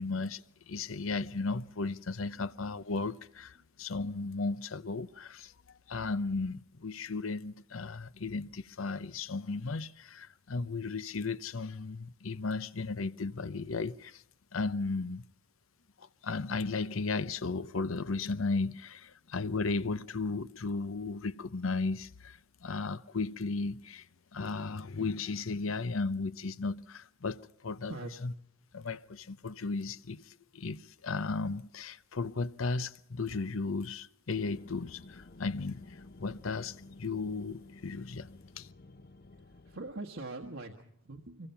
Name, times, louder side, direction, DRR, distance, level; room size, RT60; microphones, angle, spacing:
voice 1, 0.0-14.2 14.5-15.2 16.0-24.1 24.3-27.9 28.2-28.3 28.7-38.3 38.6-38.7, left 3 dB, 85° left, 0.8 m, -35 dB
sound 1, 34.3-39.9, left 2 dB, 50° left, 0.8 m, -53 dB
voice 2, 39.3-41.5, right 2 dB, 75° right, 1.5 m, -43 dB
25.0 x 23.0 x 5.8 m
head